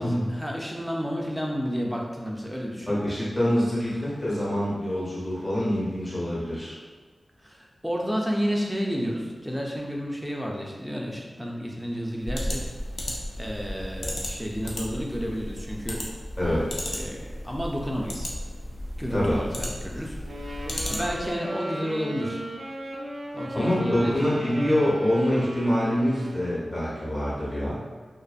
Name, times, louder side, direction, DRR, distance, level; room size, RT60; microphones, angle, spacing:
voice 1, 0.0-3.0 7.4-12.7 13.0-16.1 16.4-16.6 16.9-18.3 19.0-22.4 23.3-24.1, equal, ahead, -2 dB, 0.4 m, -31 dB
voice 2, 2.9-6.7 16.4-16.6 19.1-19.4 23.5-27.8, equal, 30° left, -8 dB, 1.2 m, -25 dB
sound 1, 12.2-21.4, left 1 dB, 70° left, 0.4 m, -34 dB
Wind instrument woodwind instrument, 20.2-26.7, right 1 dB, 90° right, 0.5 m, -36 dB
2.5 x 2.5 x 2.4 m, 1.4 s
wide cardioid pair, 65°, 0 cm